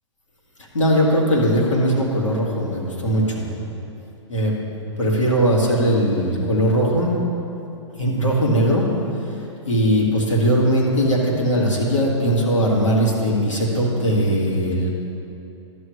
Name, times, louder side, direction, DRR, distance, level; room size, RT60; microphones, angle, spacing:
voice 1, 0.6-3.5 4.3-4.5 5.0-7.2 8.0-8.9 9.3-14.9, equal, 90° left, -3 dB, 1.9 m, -19 dB
12.0 x 7.9 x 3.2 m, 2.8 s
hypercardioid pair, 120°, 16 cm